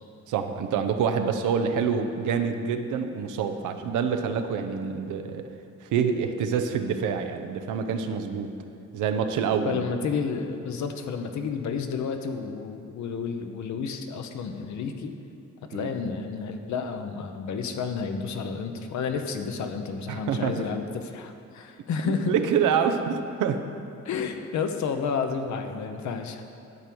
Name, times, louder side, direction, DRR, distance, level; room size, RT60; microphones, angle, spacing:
voice 1, 0.3-5.4 5.9-8.5 8.9-9.8 15.7-15.9 20.1-20.7 22.0-23.6, right 6 dB, 85° right, 7 dB, 0.8 m, -26 dB
voice 2, 9.6-15.1 15.7-22.3 24.0-26.4, left 5 dB, 70° left, 6 dB, 1.0 m, -31 dB
11.0 x 4.5 x 7.9 m, 2.6 s
cardioid pair, 90°, 30 cm